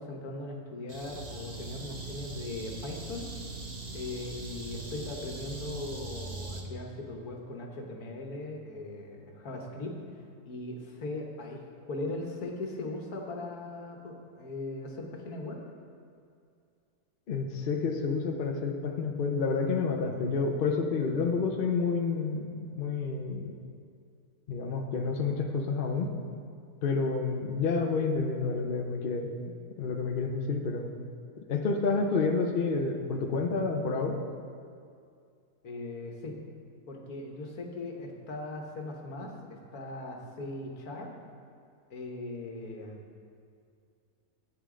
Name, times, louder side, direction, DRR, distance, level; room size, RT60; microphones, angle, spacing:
voice 1, 0.0-3.3 3.9-15.6 35.6-36.4 36.9-41.1 41.9-43.0, left 2 dB, 75° left, 1 dB, 1.7 m, -39 dB
sound 1, 0.9-6.6, right 2 dB, 35° right, 0.9 m, -41 dB
voice 2, 17.3-22.5 22.8-23.5 24.5-26.1 26.8-30.9 31.5-34.2, left 4 dB, 45° left, 3 dB, 0.8 m, -29 dB
11.5 x 8.9 x 3.8 m, 2.3 s
omnidirectional pair, 1.6 m